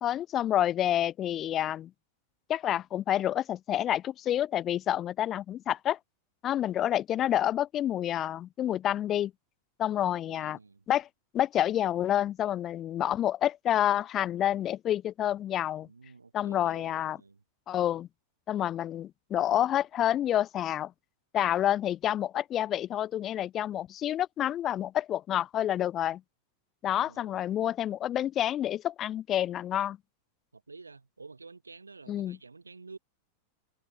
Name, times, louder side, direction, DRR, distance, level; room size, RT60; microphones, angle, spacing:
voice 1, 0.0-1.9 2.5-6.0 6.4-9.3 9.8-10.6 10.9-11.1 11.3-15.9 16.3-17.2 17.7-18.1 18.5-20.9 21.3-26.2 26.8-30.0 32.1-32.4, left 11 dB, 30° left, 0.3 m, -28 dB
voice 2, 10.3-10.8 15.8-17.4 19.4-19.5 27.0-27.4 30.5-33.0, right 4 dB, 80° right, 5.7 m, -50 dB
figure-of-eight pair, 90°, 0 cm